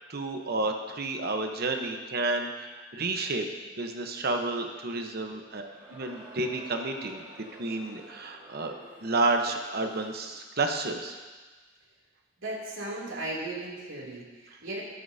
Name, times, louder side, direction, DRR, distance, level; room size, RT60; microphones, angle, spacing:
voice 1, 0.1-3.5 3.8-7.2 7.6-8.7 9.0-11.2, right 2 dB, 55° right, 4 dB, 1.0 m, -30 dB
Crowd, 5.5-10.6, right 1 dB, 30° right, 2.2 m, -51 dB
voice 2, 12.4-14.8, right 2 dB, 85° right, -4 dB, 2.9 m, -36 dB
13.0 x 11.0 x 2.8 m, 1.3 s
head